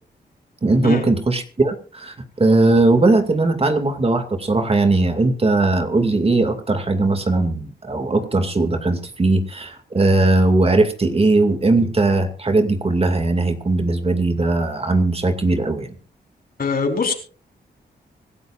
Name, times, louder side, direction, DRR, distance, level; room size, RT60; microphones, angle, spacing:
voice 1, 0.6-15.9, right 2 dB, 35° right, 7 dB, 2.3 m, -19 dB
voice 2, 16.6-17.1, left 5 dB, 55° left, 3 dB, 4.4 m, -21 dB
25.5 x 12.5 x 2.5 m, 0.38 s
cardioid pair, 75°, 18 cm